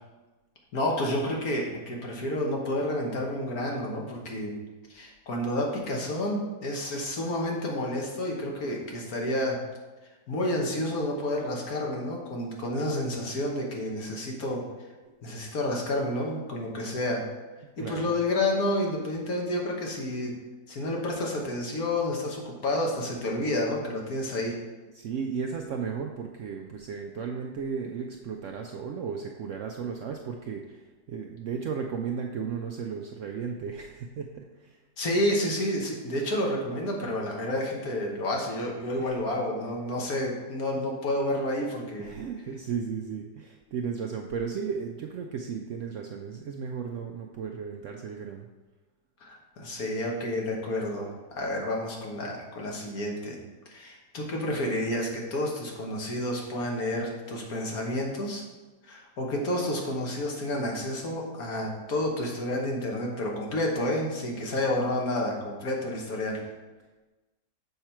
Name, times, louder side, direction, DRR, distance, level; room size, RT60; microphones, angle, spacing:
voice 1, 0.7-4.5 4.9-9.6 10.3-14.6 15.2-17.3 17.8-20.4 20.7-24.6 35.0-42.1 49.2-53.4 53.7-58.4 58.8-66.4, left 1 dB, 65° left, 0 dB, 1.7 m, -30 dB
voice 2, 17.6-18.2 24.9-30.8 31.1-34.8 39.0-39.2 42.0-48.5, right 6 dB, 70° right, 2 dB, 0.7 m, -35 dB
6.7 x 5.6 x 4.4 m, 1.2 s
omnidirectional pair, 1.7 m